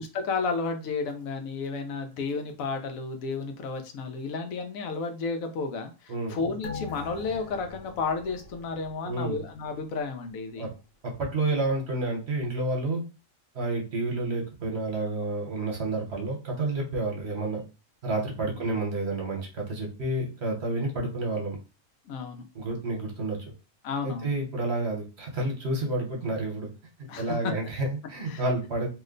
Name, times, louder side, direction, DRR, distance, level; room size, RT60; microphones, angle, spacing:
voice 1, 0.0-10.7 18.5-18.8 22.1-22.4 23.8-24.3 27.1-27.5 28.2-28.4, left 4 dB, 85° left, 6 dB, 1.1 m, -32 dB
sound 1, 6.6-9.5 9.9-10.0, left 5 dB, 55° left, 0.8 m, -42 dB
voice 2, 9.0-9.4 10.6-10.7 11.0-13.0 13.5-17.6 18.0-21.6 22.5-23.4 24.0-26.7 27.2-28.9, right 2 dB, 55° right, 0 dB, 1.2 m, -30 dB
2.9 x 2.1 x 3.7 m, 0.31 s
omnidirectional pair, 1.4 m